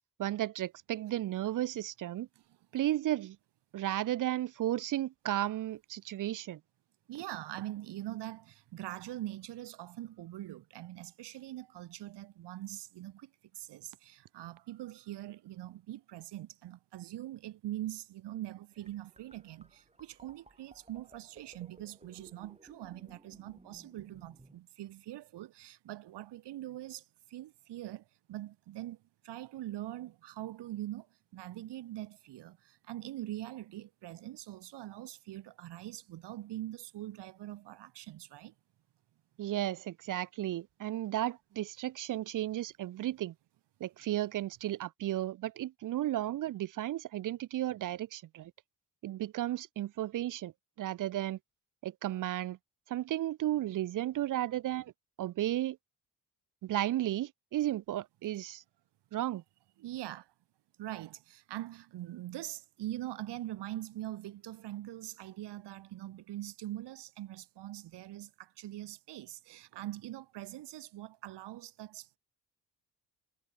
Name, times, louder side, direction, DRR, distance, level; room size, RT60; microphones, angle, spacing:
voice 1, 0.2-2.3 2.7-3.4 3.7-6.6 39.4-43.3 43.8-48.5 49.0-50.5 50.8-51.4 51.8-52.6 52.9-54.9 55.2-55.8 56.6-58.6 59.1-59.4, right 13 dB, 45° right, 0.5 m, -34 dB
voice 2, 7.1-29.0 29.2-31.1 31.3-38.5 59.8-60.3 60.8-72.2, right 14 dB, 65° right, 1.3 m, -43 dB
sound 1, 18.7-24.6, right 2 dB, 15° right, 2.8 m, -60 dB
supercardioid pair, 55°, 43 cm